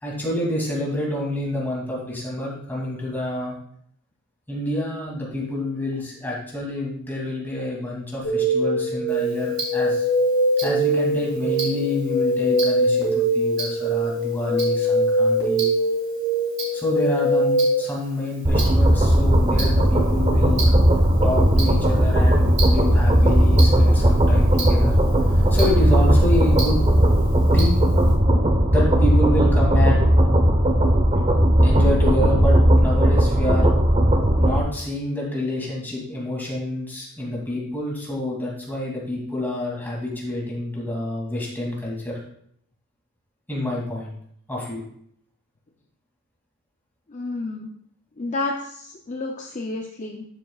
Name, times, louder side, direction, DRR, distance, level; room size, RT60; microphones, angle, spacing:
voice 1, 0.0-3.5 4.5-10.1 10.6-15.7 16.7-20.6 21.2-24.9 25.2-26.8 27.4-27.8 28.7-30.1 31.6-33.7 34.4-42.2 43.5-44.1 44.5-44.8, left 1 dB, 10° left, -4 dB, 2.5 m, -28 dB
sound 1, 8.2-17.8, equal, 90° left, 3.1 m, -22 dB
Tick-tock, 9.1-28.1, right 3 dB, 55° right, 2.8 m, -37 dB
sound 2, 18.5-34.6, equal, 25° right, 0.9 m, -17 dB
voice 2, 47.1-47.7 48.2-50.2, left 2 dB, 35° left, 2 dB, 0.6 m, -30 dB
12.0 x 7.2 x 2.4 m, 0.68 s
head